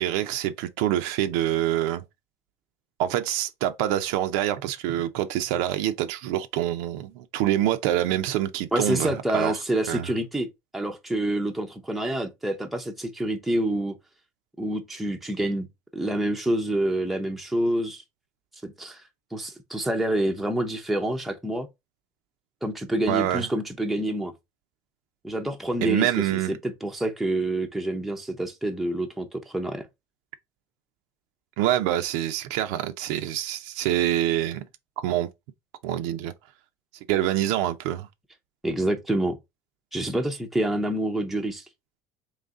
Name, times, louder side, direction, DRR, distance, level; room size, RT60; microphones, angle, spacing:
voice 1, 0.0-2.0 3.0-9.5 9.9-10.1 23.1-23.5 25.8-26.5 31.6-34.6 35.0-35.3 35.8-36.3 37.1-38.1, right 12 dB, 80° right, 0.5 m, -26 dB
voice 2, 8.7-10.5 10.7-14.0 14.6-15.7 15.9-18.0 18.6-19.0 19.3-21.7 22.6-24.3 25.2-29.9 38.6-39.4 39.9-41.7, right 1 dB, ahead, 0.5 m, -27 dB
3.9 x 3.2 x 3.5 m
cardioid pair, 155°, 7 cm